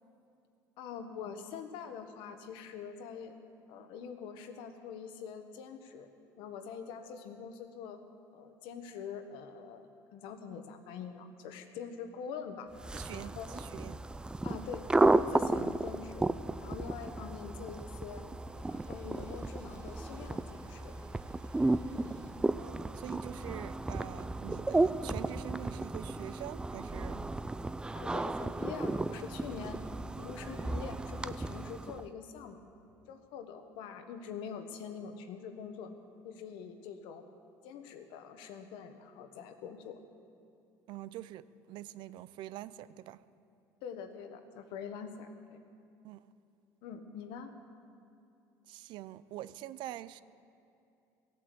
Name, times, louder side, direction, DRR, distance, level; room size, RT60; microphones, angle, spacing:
voice 1, 0.8-3.3 3.7-6.1 6.4-8.0 8.3-12.7 13.1-13.6 14.4-14.8 15.1-16.3 16.6-18.3 18.6-20.9 27.9-29.8 30.2-32.6 33.1-35.9 36.2-37.2 37.6-40.0 43.8-45.6 46.8-47.5, left 6 dB, 75° left, 7 dB, 1.3 m, -44 dB
sound 1, 12.8-32.1, right 2 dB, 10° right, 0.4 m, -33 dB
voice 2, 12.9-14.0 22.6-27.2 40.9-43.2 46.0-46.2 48.7-50.2, right 13 dB, 70° right, 16 dB, 0.5 m, -45 dB
sound 2, 17.0-22.3, right 2 dB, 50° right, 2.8 m, -60 dB
16.5 x 8.7 x 7.9 m, 2.6 s
cardioid pair, 110°, 8 cm